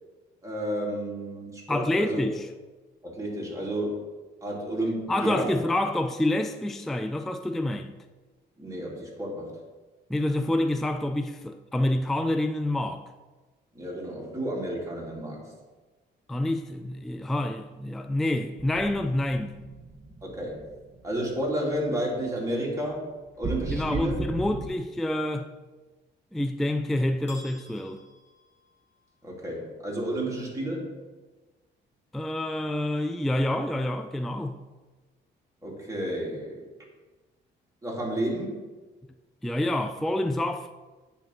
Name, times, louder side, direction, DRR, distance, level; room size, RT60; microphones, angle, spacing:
voice 1, 0.4-2.2 3.0-4.1 4.4-5.6 8.6-9.6 13.7-15.5 20.2-20.7 21.0-23.1 23.4-24.2 29.2-30.9 35.6-36.6 37.8-38.6, right 1 dB, 15° right, 2.5 m, -31 dB
voice 2, 1.7-2.5 5.1-7.9 10.1-13.1 16.3-19.6 23.7-25.5 26.3-28.0 32.1-34.6 39.4-40.7, left 1 dB, ahead, 0.3 m, -27 dB
sound 1, 18.6-21.4 21.7-21.9 23.4-24.7, right 3 dB, 40° right, 0.7 m, -36 dB
sound 2, 27.3-29.3, left 1 dB, 35° left, 1.7 m, -51 dB
8.9 x 3.5 x 6.1 m
cardioid pair, 90°, 20 cm